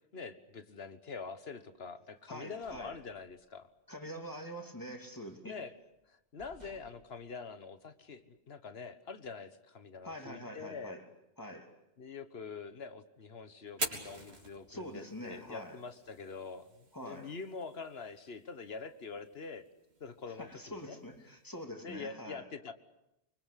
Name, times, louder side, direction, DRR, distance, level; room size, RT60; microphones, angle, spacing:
voice 1, 0.1-3.7 5.4-5.7 6.1-11.0 12.0-19.6 20.0-21.0 21.8-22.7, left 5 dB, 70° left, 1.6 m, -45 dB
voice 2, 2.3-3.0 3.9-5.6 10.0-11.0 11.4-11.7 14.7-15.8 16.9-17.3 20.3-22.5, equal, 20° left, 2.8 m, -45 dB
sound 1, 2.3-3.9 4.2-4.5 4.8-5.6 6.0-6.1 6.4-8.2, right 1 dB, 40° right, 2.6 m, -61 dB
Fire, 13.7-21.6, right 2 dB, 70° right, 3.4 m, -46 dB
24.5 x 24.0 x 8.3 m
omnidirectional pair, 1.1 m